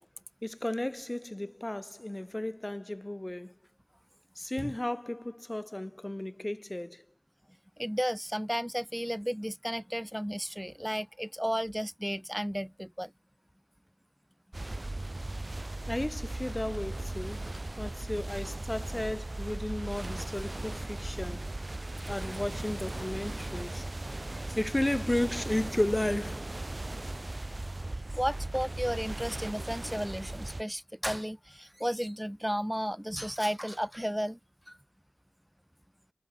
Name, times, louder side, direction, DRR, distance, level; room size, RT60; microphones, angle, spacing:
voice 1, 0.4-3.5 4.3-7.0 15.9-17.5 17.8-21.5 22.1-26.6, left 1 dB, 25° left, 1.5 m, -34 dB
voice 2, 7.8-13.1 28.1-34.4 34.7-34.8, equal, 5° right, 2.4 m, -33 dB
sound 1, 14.5-30.6, right 2 dB, 40° right, 2.6 m, -37 dB
cardioid pair, 40°, 0 cm